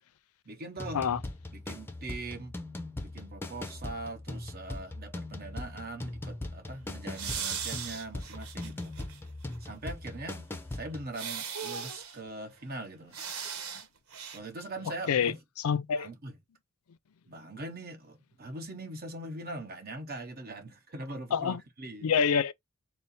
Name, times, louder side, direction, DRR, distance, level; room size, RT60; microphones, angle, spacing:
voice 1, 0.4-1.0 1.5-2.6 3.0-8.9 9.6-13.2 14.3-15.4 15.9-16.4 17.3-22.1, right 2 dB, 45° right, 1.1 m, -41 dB
sound 1, 0.8-11.1, left 2 dB, 10° left, 0.5 m, -40 dB
sound 2, 7.1-9.2 9.5-9.6 11.1-12.2 13.1-13.8 14.1-14.4, right 7 dB, 90° right, 1.0 m, -38 dB
voice 2, 15.6-16.1 21.3-21.6 22.0-22.5, left 7 dB, 85° left, 0.4 m, -26 dB
4.3 x 2.0 x 4.1 m
head